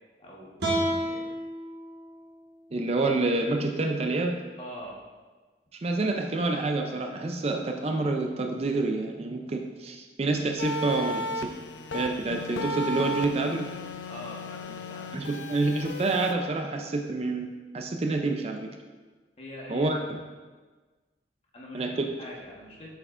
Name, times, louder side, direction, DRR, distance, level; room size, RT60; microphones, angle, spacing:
voice 1, 0.2-1.2 4.6-5.0 14.0-15.1 19.4-19.9 21.5-22.9, left 1 dB, 35° left, -3 dB, 1.2 m, -43 dB
sound 1, 0.6-3.8, right 1 dB, 65° right, 1.4 m, -33 dB
voice 2, 2.7-4.4 5.7-11.5 11.9-13.7 15.1-17.5 17.7-18.7 19.7-20.2 21.7-22.1, right 3 dB, 35° right, 4 dB, 0.4 m, -28 dB
sound 2, 10.6-16.3, left 2 dB, 85° left, 0.5 m, -35 dB
7.8 x 5.5 x 2.5 m, 1.4 s
head